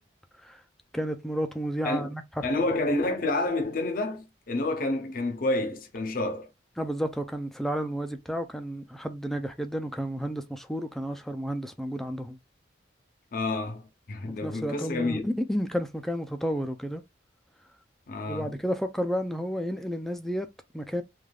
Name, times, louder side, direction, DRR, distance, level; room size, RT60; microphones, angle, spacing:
voice 1, 0.9-2.2 6.8-12.4 14.2-17.0 18.3-20.5 20.7-21.0, equal, ahead, 0.3 m, -31 dB
voice 2, 2.4-6.5 13.3-15.3 18.1-18.5, left 2 dB, 50° left, 0.6 m, -29 dB
3.3 x 2.3 x 2.3 m
head